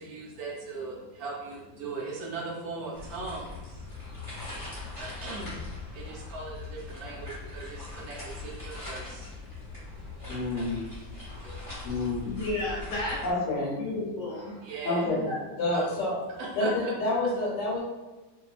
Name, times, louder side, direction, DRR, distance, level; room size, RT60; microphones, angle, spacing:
voice 1, 0.0-4.3 5.0-5.6 5.9-9.5 9.8-10.2 11.1-11.7 14.4-15.1 15.7-15.9 16.4-16.9, right 3 dB, 70° right, -3 dB, 1.0 m, -39 dB
sound 1, 2.9-13.3, left 3 dB, 25° left, 1.0 m, -41 dB
voice 2, 4.0-4.8 6.0-6.3 9.7-10.1 11.3-11.9 12.2-13.2 13.8-14.6 15.0-15.4, left 2 dB, 60° left, -4 dB, 0.9 m, -35 dB
voice 3, 10.3-10.8 11.8-12.2 13.2-13.7 14.8-15.2 15.6-16.2 16.6-17.8, left 2 dB, 85° left, -6 dB, 1.4 m, -28 dB
2.8 x 2.5 x 2.4 m, 1.1 s
omnidirectional pair, 1.9 m